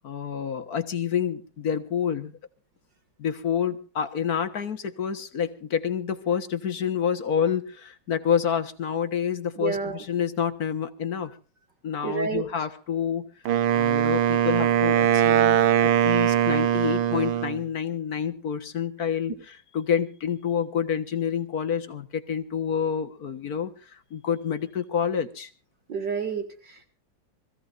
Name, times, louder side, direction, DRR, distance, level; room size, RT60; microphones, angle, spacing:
voice 1, 0.0-2.4 3.2-11.3 11.8-13.3 13.7-25.5, left 8 dB, 50° left, 9 dB, 1.7 m, -28 dB
voice 2, 9.6-10.0 12.0-12.4 25.9-26.8, right 6 dB, 65° right, 4 dB, 2.7 m, -29 dB
Wind instrument woodwind instrument, 13.5-17.6, right 9 dB, 80° right, 1.7 m, -21 dB
25.5 x 16.0 x 2.6 m, 0.36 s
omnidirectional pair, 2.1 m